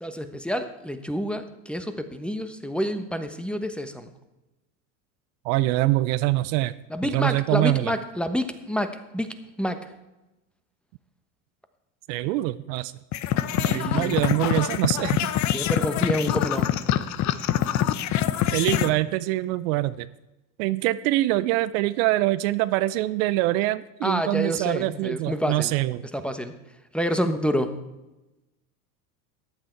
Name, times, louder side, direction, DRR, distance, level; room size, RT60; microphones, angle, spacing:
voice 1, 0.0-4.1 6.9-9.9 13.6-14.2 15.5-16.8 24.0-25.7 26.0-26.6 26.9-27.7, equal, ahead, 8 dB, 1.1 m, -28 dB
voice 2, 5.4-6.7 7.1-7.9 12.1-12.9 13.6-15.3 18.5-20.1 20.6-26.0, right 17 dB, 60° right, 15 dB, 0.6 m, -24 dB
sound 1, 13.1-18.9, left 11 dB, 40° left, 0.8 m, -24 dB
14.5 x 9.6 x 4.6 m, 1.0 s
hypercardioid pair, 100°, 44 cm